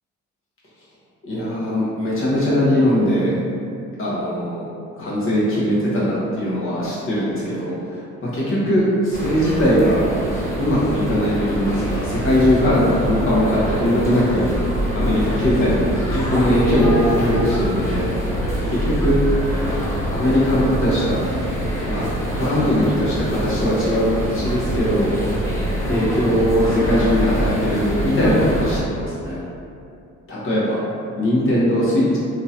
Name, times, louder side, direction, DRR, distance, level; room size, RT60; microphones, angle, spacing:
voice 1, 1.2-3.3 4.0-4.6 5.0-7.7 8.2-10.0 10.6-14.5 14.9-18.1 18.7-19.2 20.1-21.2 21.8-25.4 25.9-29.4 30.3-30.8 31.2-32.2, equal, 45° left, -8 dB, 1.1 m, -20 dB
sound 1, 9.1-28.8, equal, 10° left, 0.7 m, -24 dB
2.9 x 2.5 x 2.8 m, 2.5 s
cardioid pair, 90°, 30 cm